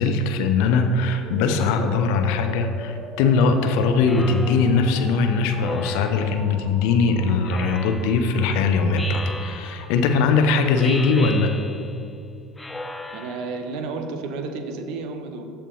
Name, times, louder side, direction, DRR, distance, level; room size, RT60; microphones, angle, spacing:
voice 1, 0.0-11.5, left 4 dB, 65° left, 6 dB, 0.6 m, -20 dB
sound 1, 1.2-11.2, right 1 dB, 25° right, 1.0 m, -42 dB
Speech synthesizer, 4.1-4.9 5.6-6.5 7.4-8.3 9.0-10.0 10.8-12.0 12.6-13.6, left 2 dB, 10° left, 0.5 m, -36 dB
voice 2, 13.1-15.4, right 3 dB, 60° right, 6 dB, 0.8 m, -31 dB
13.5 x 4.5 x 3.1 m, 2.7 s
figure-of-eight pair, 70°, 0 cm